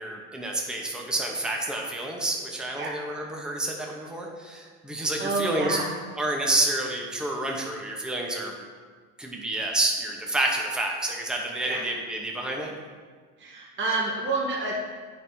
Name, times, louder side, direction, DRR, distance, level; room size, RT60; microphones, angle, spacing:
voice 1, 0.0-5.8 6.2-8.5 9.2-12.7, right 1 dB, ahead, 0 dB, 0.9 m, -29 dB
voice 2, 5.2-5.9 11.6-11.8 13.4-14.8, right 2 dB, 25° right, -3 dB, 1.3 m, -28 dB
8.3 x 5.6 x 2.7 m, 1.5 s
hypercardioid pair, 95°, 45 cm